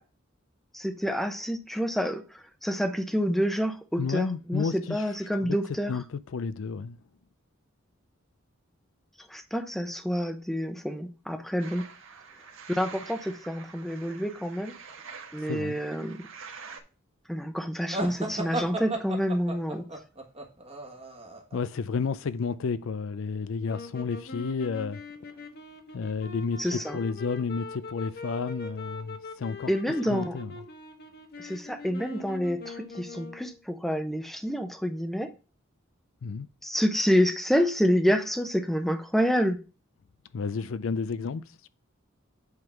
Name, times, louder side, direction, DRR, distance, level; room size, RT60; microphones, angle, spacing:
voice 1, 0.7-6.0 9.3-11.9 12.7-14.8 15.3-16.2 17.3-19.9 26.6-27.0 29.7-30.4 31.4-35.3 36.6-39.6, equal, ahead, 0.8 m, -28 dB
voice 2, 4.0-5.0 5.4-5.6 5.9-7.0 15.4-15.8 21.5-25.0 25.3-25.4 25.9-29.7 30.1-30.5 36.2-36.5 40.3-41.7, left 5 dB, 70° left, 0.4 m, -31 dB
sound 1, 11.6-16.8, right 6 dB, 70° right, 1.4 m, -46 dB
sound 2, 17.9-21.6, right 2 dB, 30° right, 1.4 m, -34 dB
sound 3, 23.6-33.6, left 3 dB, 50° left, 1.3 m, -42 dB
7.9 x 3.7 x 5.8 m
head